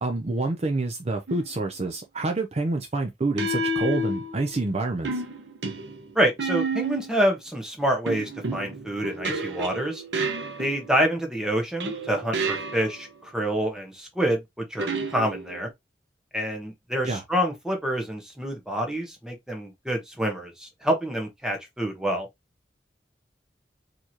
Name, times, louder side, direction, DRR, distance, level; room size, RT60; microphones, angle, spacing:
voice 1, 0.0-5.2 17.0-17.2, right 2 dB, 35° right, 0.6 m, -27 dB
sound 1, 1.3-1.6 3.4-4.6 5.0-7.2 8.1-11.1 11.8-13.1 14.8-15.7, right 2 dB, 80° right, 1.0 m, -30 dB
voice 2, 6.1-10.0 10.6-15.7 16.3-22.3, right 1 dB, 5° right, 1.1 m, -27 dB
4.6 x 3.0 x 2.8 m
head